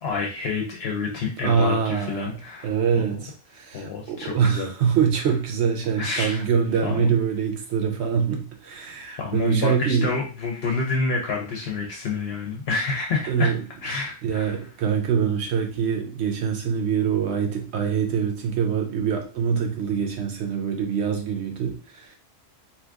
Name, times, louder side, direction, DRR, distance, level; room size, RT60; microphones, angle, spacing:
voice 1, 0.0-3.2 3.7-4.7 6.0-6.4 6.8-7.2 9.2-13.5 13.8-14.6, left 4 dB, 65° left, 0 dB, 0.8 m, -28 dB
voice 2, 1.4-2.3 2.6-10.1 13.3-13.6 14.2-22.2, right 7 dB, 70° right, 4 dB, 0.9 m, -24 dB
2.8 x 2.4 x 3.5 m, 0.37 s
omnidirectional pair, 1.2 m